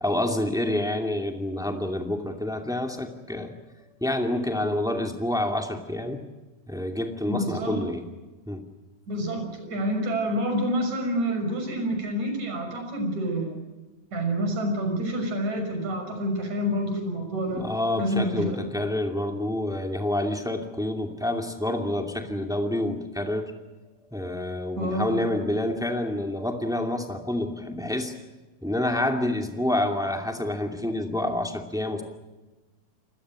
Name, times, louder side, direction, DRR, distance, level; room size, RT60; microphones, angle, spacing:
voice 1, 0.0-3.5 4.0-6.2 6.7-8.0 8.5-8.6 17.5-23.5 24.1-28.1 28.6-32.0, left 1 dB, ahead, 4 dB, 1.7 m, -28 dB
voice 2, 7.3-7.8 9.1-13.6 14.1-17.7 18.0-18.6 24.8-25.3, equal, 50° right, 5 dB, 7.4 m, -28 dB
29.5 x 21.0 x 6.4 m, 1.2 s
omnidirectional pair, 4.1 m